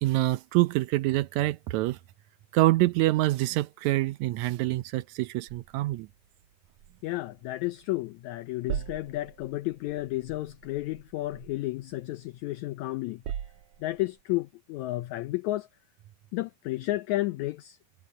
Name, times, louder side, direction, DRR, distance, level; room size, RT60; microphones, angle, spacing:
voice 1, 0.0-2.0 2.5-6.1, right 17 dB, 80° right, 1.6 m, -26 dB
sound 1, 5.5-8.0 8.3-12.5 12.9-14.2, right 9 dB, 65° right, 2.3 m, -42 dB
voice 2, 7.0-13.2 13.8-15.7 16.3-17.8, left 17 dB, 75° left, 1.8 m, -32 dB
omnidirectional pair, 3.9 m